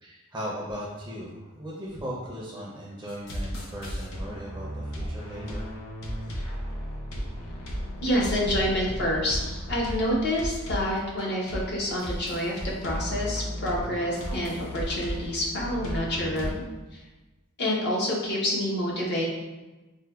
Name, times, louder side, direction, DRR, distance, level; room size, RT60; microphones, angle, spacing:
voice 1, 0.0-5.7, equal, 15° right, -5 dB, 0.4 m, -37 dB
sound 1, 3.1-16.5, equal, 85° left, 0.6 m, -34 dB
voice 2, 8.0-9.4 9.7-16.6 16.9-17.0 17.6-19.2, left 1 dB, 55° left, -4 dB, 0.7 m, -28 dB
4.2 x 2.1 x 2.3 m, 1.2 s
head